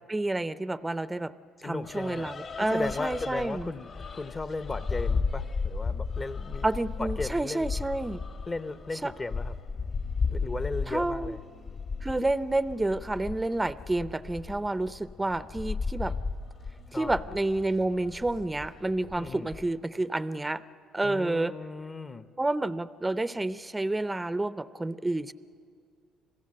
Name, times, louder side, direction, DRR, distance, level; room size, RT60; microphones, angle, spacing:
voice 1, 0.1-1.3 1.6-3.7 6.6-8.2 9.0-9.1 10.9-11.4 12.0-16.2 16.9-20.6 20.9-21.5 22.4-25.3, right 2 dB, 15° right, 15 dB, 0.5 m, -29 dB
voice 2, 1.6-2.3 2.6-6.7 7.0-7.7 8.5-9.6 10.3-11.4 16.9-17.2 19.1-19.5 21.0-22.3, left 3 dB, 25° left, 12 dB, 0.8 m, -36 dB
sound 1, 1.8-19.7, left 4 dB, 50° left, 1.5 m, -35 dB
27.0 x 16.5 x 7.6 m, 2.3 s
supercardioid pair, 90°, 0 cm